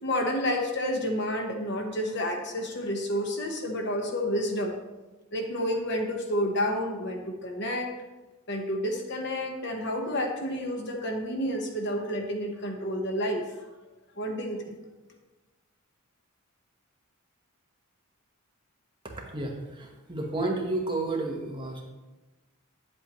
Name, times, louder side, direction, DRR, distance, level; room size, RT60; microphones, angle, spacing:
voice 1, 0.0-4.8 5.3-7.9 8.5-13.5 14.2-14.8, equal, 55° left, 2 dB, 1.1 m, -30 dB
voice 2, 19.1-21.9, right 2 dB, 20° right, 0 dB, 1.0 m, -31 dB
9.0 x 7.8 x 3.0 m, 1.1 s
head